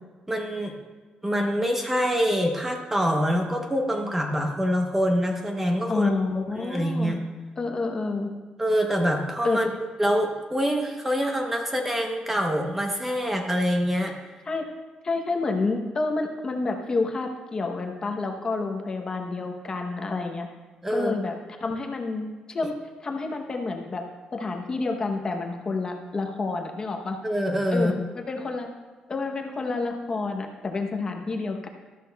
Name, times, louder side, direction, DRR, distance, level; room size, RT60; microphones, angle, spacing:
voice 1, 0.3-0.7 1.2-6.1 6.5-7.2 8.6-9.7 10.0-14.1 20.8-21.1 27.2-28.0, equal, 10° right, 2 dB, 0.8 m, -25 dB
voice 2, 5.9-7.1 7.6-8.3 9.4-9.6 14.4-14.6 15.0-20.5 20.9-22.7 23.0-24.0 24.3-27.2 27.7-28.7 29.1-31.7, left 3 dB, 25° left, 3 dB, 0.8 m, -29 dB
13.0 x 13.0 x 2.3 m, 1.3 s
cardioid pair, 180°, 3 cm